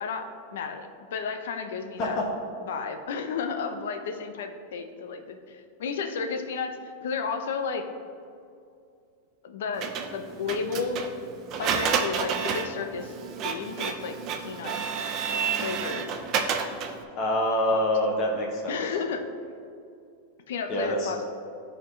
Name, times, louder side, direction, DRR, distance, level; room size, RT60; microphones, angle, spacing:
voice 1, 0.0-2.2 2.7-7.9 9.4-11.1 11.6-13.1 13.4-14.8 15.6-16.1 17.7-17.8 18.7-19.3 20.5-21.3, left 5 dB, 75° left, 6 dB, 0.6 m, -33 dB
Printer, 9.8-17.0, right 6 dB, 30° right, 0.5 m, -30 dB
voice 2, 17.1-18.8 20.7-21.1, left 1 dB, 35° left, 0 dB, 0.9 m, -26 dB
11.5 x 4.3 x 3.1 m, 2.5 s
supercardioid pair, 160°, 0 cm